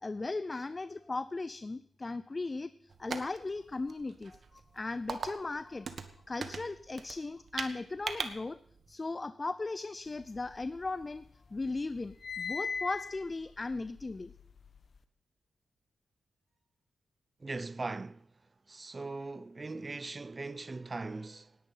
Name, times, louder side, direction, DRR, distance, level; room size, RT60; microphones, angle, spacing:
voice 1, 0.0-5.9 6.3-8.6 8.9-14.3, left 3 dB, 35° left, 0.5 m, -37 dB
sound 1, 2.9-8.9, right 5 dB, 60° right, 1.4 m, -41 dB
sound 2, 10.2-11.3 11.6-15.0, left 5 dB, 60° left, 1.1 m, -41 dB
voice 2, 17.4-18.3 18.7-21.6, right 3 dB, 35° right, 0.5 m, -40 dB
18.0 x 10.5 x 5.7 m
cardioid pair, 60°, 0 cm